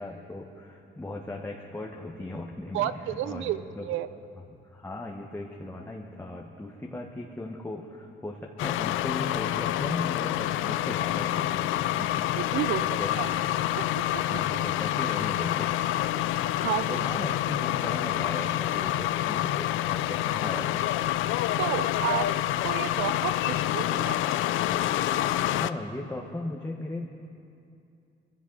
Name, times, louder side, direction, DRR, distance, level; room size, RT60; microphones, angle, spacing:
voice 1, 0.0-2.9 3.2-3.9 4.7-13.4 14.1-15.8 16.9-20.8 25.5-27.1, left 2 dB, 10° left, -1 dB, 1.2 m, -37 dB
voice 2, 2.7-4.1 12.0-12.1 12.3-12.8 13.2-13.3 13.8-14.4 16.4-17.1 21.6-22.3 22.6-24.3, right 12 dB, 85° right, 14 dB, 0.6 m, -31 dB
sound 1, 8.6-25.7, left 13 dB, 90° left, 0.4 m, -27 dB
22.5 x 15.5 x 4.0 m, 2.6 s
cardioid pair, 90°, 20 cm